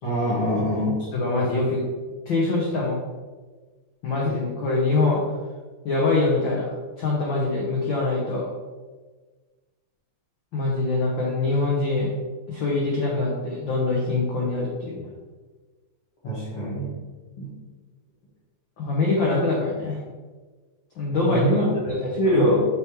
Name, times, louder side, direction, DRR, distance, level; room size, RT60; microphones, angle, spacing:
voice 1, 0.0-1.1 16.2-16.9 17.4-17.5 21.2-21.7 22.2-22.8, equal, 50° left, -10 dB, 2.3 m, -23 dB
voice 2, 1.1-1.8 2.3-3.0 4.0-5.2 5.8-6.7 7.0-8.5 10.5-12.1 12.5-15.0 18.8-20.0 21.0-21.5 21.8-22.1, left 3 dB, 90° left, -4 dB, 1.0 m, -24 dB
6.8 x 4.7 x 3.1 m, 1.3 s
omnidirectional pair, 3.5 m